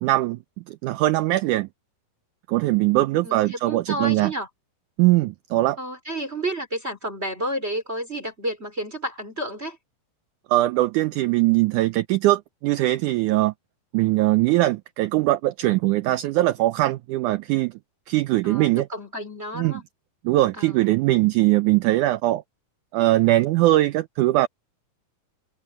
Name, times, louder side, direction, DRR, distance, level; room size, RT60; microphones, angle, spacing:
voice 1, 0.0-0.4 0.7-1.7 2.5-4.3 5.0-5.8 10.5-13.5 13.9-17.7 18.1-18.9 19.6-19.8 20.3-22.4 22.9-24.5, right 17 dB, 80° right, 1.9 m, -21 dB
voice 2, 3.2-4.5 5.8-9.8 18.4-19.8 20.5-20.9, right 1 dB, 20° right, 3.6 m, -31 dB
omnidirectional pair, 4.0 m